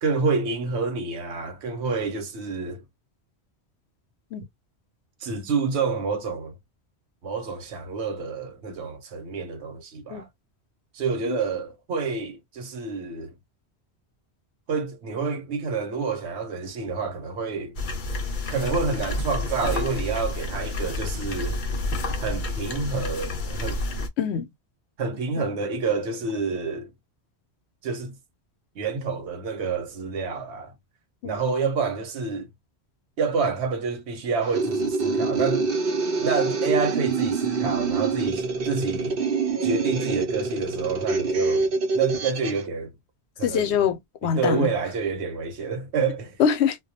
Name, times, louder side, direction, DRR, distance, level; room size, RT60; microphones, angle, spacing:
voice 1, 0.0-2.8 5.2-6.5 7.2-10.3 10.9-13.3 14.7-17.8 18.5-21.6 22.2-23.8 25.0-26.9 27.8-28.2 28.7-30.7 31.2-32.5 33.2-35.7 36.2-39.2 39.6-42.9 43.4-43.8 44.2-46.4, right 4 dB, 90° right, 1.0 m, -28 dB
sound 1, 17.8-24.1, left 2 dB, 55° left, 0.7 m, -29 dB
voice 2, 24.2-24.5 25.4-25.5 31.2-31.4 43.4-44.7 46.4-46.8, left 7 dB, 85° left, 0.9 m, -24 dB
sound 2, 34.4-42.6, right 4 dB, 60° right, 0.9 m, -26 dB
2.3 x 2.2 x 2.6 m
omnidirectional pair, 1.1 m